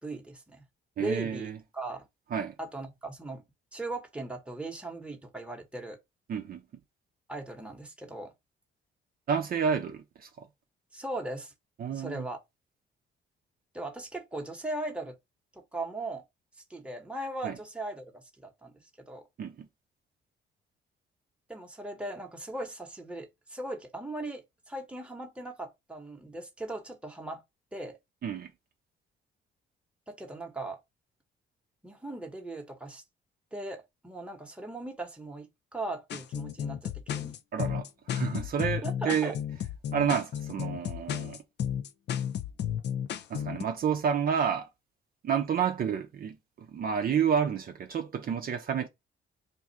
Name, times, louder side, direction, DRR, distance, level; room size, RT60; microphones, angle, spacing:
voice 1, 0.0-0.6 1.0-2.1 2.6-3.4 3.7-6.0 7.3-8.3 10.9-11.5 11.9-12.4 13.7-15.2 15.5-16.2 16.7-19.2 21.5-27.4 27.7-28.0 30.1-30.8 31.8-33.0 33.5-37.4 38.8-39.3, right 2 dB, 5° right, 1.0 m, -38 dB
voice 2, 1.0-1.6 2.3-2.5 6.3-6.6 9.3-10.3 11.8-12.3 17.4-17.6 19.4-19.7 28.2-28.5 37.5-39.4 39.9-41.4 43.3-44.7 45.2-48.9, right 7 dB, 50° right, 0.5 m, -30 dB
sound 1, 36.1-43.6, left 9 dB, 60° left, 0.4 m, -33 dB
2.6 x 2.3 x 4.1 m
cardioid pair, 90°, 20 cm